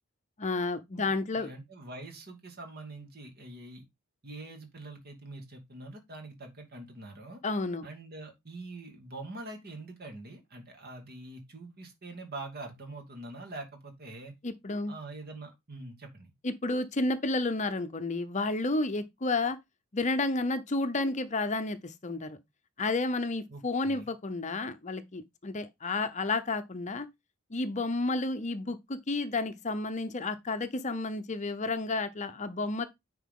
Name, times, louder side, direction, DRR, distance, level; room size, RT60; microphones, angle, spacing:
voice 1, 0.4-1.5 7.4-7.9 14.4-14.9 16.4-19.6 19.9-22.4 22.8-27.1 27.5-32.9, left 2 dB, 35° left, 0.7 m, -31 dB
voice 2, 0.9-3.8 4.2-7.4 7.8-14.3 14.9-16.3 23.5-24.1, right 2 dB, 45° right, 2.5 m, -44 dB
9.8 x 4.6 x 3.7 m
head